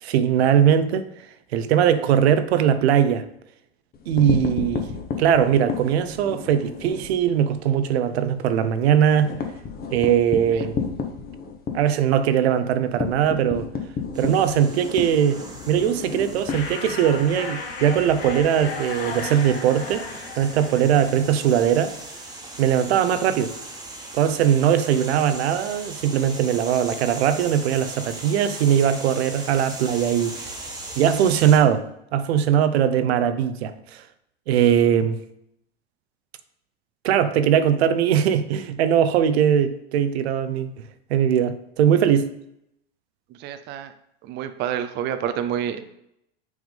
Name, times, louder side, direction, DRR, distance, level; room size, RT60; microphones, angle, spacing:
voice 1, 0.0-1.1 1.5-3.2 4.1-4.9 5.2-9.3 9.9-10.8 11.7-13.7 14.2-20.0 20.4-21.9 22.6-23.5 24.1-30.6 31.0-34.0 34.5-35.2 37.0-40.7 41.1-42.3, right 9 dB, 75° right, 0.7 m, -20 dB
sound 1, 3.9-7.1 7.5-7.7 8.0-8.1 8.4-17.3, left 6 dB, 30° left, 1.0 m, -31 dB
sound 2, 14.1-31.6, right 2 dB, 10° right, 1.3 m, -39 dB
sound 3, 16.5-22.0, left 4 dB, 70° left, 1.4 m, -35 dB
voice 2, 43.4-43.9 44.3-45.8, right 9 dB, 35° right, 0.5 m, -28 dB
6.3 x 3.6 x 5.1 m
hypercardioid pair, 115°, 32 cm